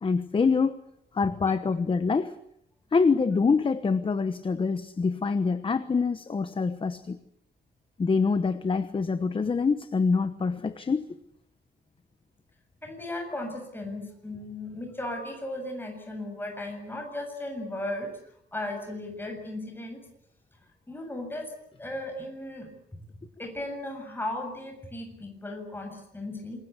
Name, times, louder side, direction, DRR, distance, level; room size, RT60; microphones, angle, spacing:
voice 1, 0.0-0.8 1.1-2.3 2.9-7.2 8.0-11.1, left 4 dB, 30° left, 12 dB, 1.0 m, -25 dB
voice 2, 12.8-18.1 18.5-20.0 20.9-21.5 21.8-22.7 23.4-26.6, left 1 dB, 10° left, 3 dB, 7.4 m, -36 dB
27.0 x 22.5 x 8.2 m, 0.76 s
wide cardioid pair, 170°, 19 cm